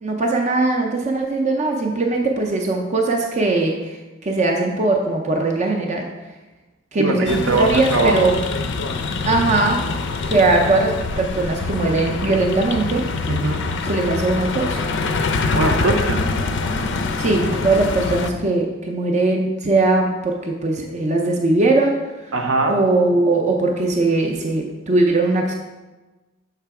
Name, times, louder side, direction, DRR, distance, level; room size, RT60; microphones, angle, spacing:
voice 1, 0.0-4.0 4.2-6.1 6.9-8.4 9.2-9.8 10.3-13.0 13.8-14.8 17.2-22.0 22.7-25.5, right 2 dB, 35° right, 1 dB, 0.5 m, -20 dB
voice 2, 7.0-8.1 13.3-13.6 15.5-16.2 22.3-22.8, right 2 dB, 70° right, 3 dB, 0.8 m, -20 dB
sound 1, 7.3-18.3, left 3 dB, 60° left, 0.4 m, -24 dB
6.7 x 3.3 x 4.7 m, 1.2 s
head